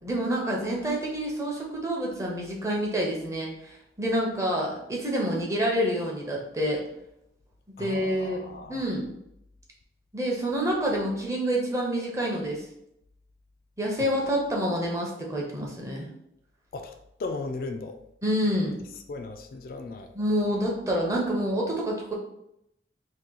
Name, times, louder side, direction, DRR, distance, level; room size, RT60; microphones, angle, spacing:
voice 1, 0.0-6.8 7.8-8.4 8.7-9.1 10.1-12.6 13.8-16.1 18.2-18.8 20.1-22.1, equal, 15° right, -2 dB, 0.6 m, -27 dB
voice 2, 7.8-8.8 14.0-14.1 16.7-16.9 17.2-18.0 19.1-20.1, left 3 dB, 50° left, 5 dB, 0.3 m, -36 dB
2.9 x 2.8 x 3.8 m, 0.80 s
head